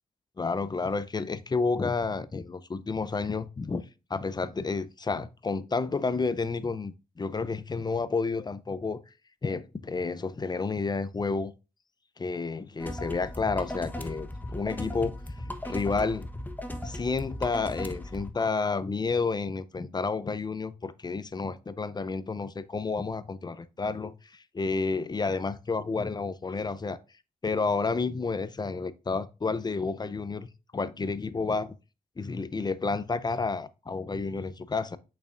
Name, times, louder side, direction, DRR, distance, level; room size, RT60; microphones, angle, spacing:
voice 1, 0.4-3.8 4.1-9.0 9.4-11.5 12.2-15.2 15.5-16.3 16.8-27.0 27.4-30.5 30.7-31.7 32.2-35.0, left 4 dB, 30° left, 0.6 m, -30 dB
sound 1, 12.8-18.3, left 1 dB, 10° left, 1.0 m, -37 dB
6.6 x 5.7 x 2.5 m
cardioid pair, 55°, 15 cm